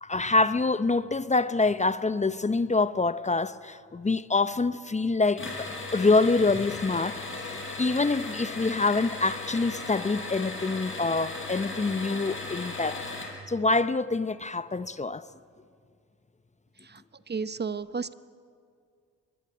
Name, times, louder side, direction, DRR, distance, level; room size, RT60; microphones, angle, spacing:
voice 1, 0.0-13.0 13.5-15.3, left 3 dB, 20° left, 0.8 m, -26 dB
sound 1, 5.4-13.4, left 3 dB, 40° left, 6.1 m, -37 dB
voice 2, 16.8-18.1, right 5 dB, 30° right, 1.0 m, -33 dB
24.0 x 21.5 x 9.2 m
supercardioid pair, 55°, 33 cm